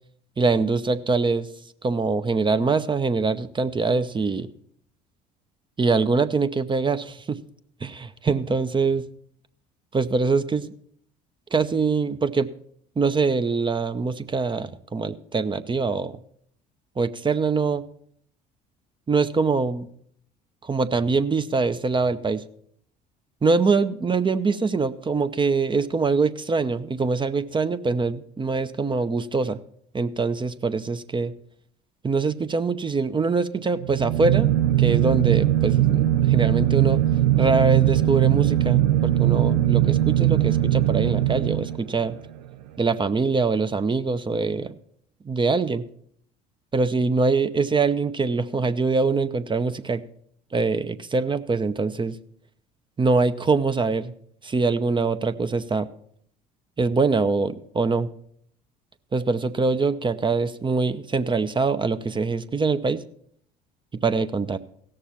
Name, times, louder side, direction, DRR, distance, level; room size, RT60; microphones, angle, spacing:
voice 1, 0.4-1.5 1.8-4.5 5.8-7.4 7.8-9.0 9.9-10.7 11.5-12.5 13.0-16.2 17.0-17.8 19.1-19.9 20.6-22.4 23.4-29.6 29.9-31.3 32.0-34.5 34.8-37.0 37.4-42.2 42.8-44.7 45.2-45.8 46.7-50.0 50.5-52.2 53.0-54.1 54.4-55.9 56.8-58.1 59.1-63.0 64.0-64.6, right 4 dB, 25° right, 11 dB, 0.7 m, -23 dB
sound 1, 33.8-42.1, right 13 dB, 80° right, 0.6 m, -20 dB
16.5 x 6.7 x 5.7 m, 0.65 s
hypercardioid pair, 65°, 21 cm